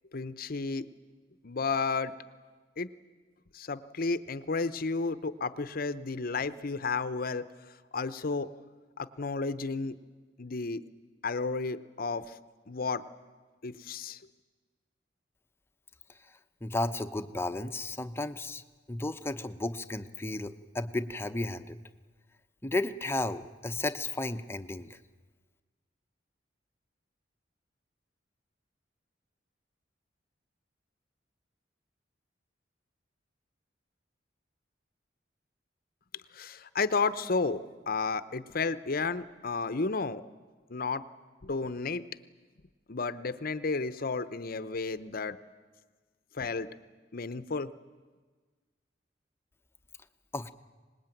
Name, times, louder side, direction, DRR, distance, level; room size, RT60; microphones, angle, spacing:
voice 1, 0.1-0.9 1.4-2.1 2.8-2.9 3.5-7.5 7.9-8.5 9.0-10.0 10.4-10.8 11.2-12.4 12.7-13.0 13.6-14.2 36.3-37.6 37.9-40.2 40.7-41.1 41.4-42.0 42.9-45.4 46.3-46.7 47.1-47.7, left 4 dB, 50° left, 14 dB, 0.7 m, -32 dB
voice 2, 16.6-18.6 18.9-21.8 22.6-25.0 50.3-50.5, left 2 dB, 15° left, 8 dB, 0.8 m, -33 dB
25.0 x 20.0 x 9.1 m, 1.4 s
head